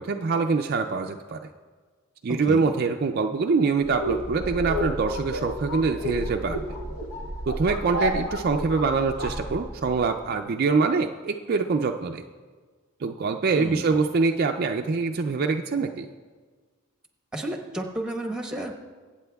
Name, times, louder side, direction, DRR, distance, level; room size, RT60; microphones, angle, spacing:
voice 1, 0.0-1.5 2.2-6.8 7.5-12.2 13.0-16.1, right 4 dB, 45° right, 4 dB, 0.4 m, -24 dB
sound 1, 3.8-10.1, equal, 85° left, 1.7 m, -31 dB
voice 2, 13.5-13.9 17.3-18.8, right 1 dB, 5° right, 2 dB, 1.0 m, -32 dB
23.5 x 8.6 x 2.3 m, 1.5 s
head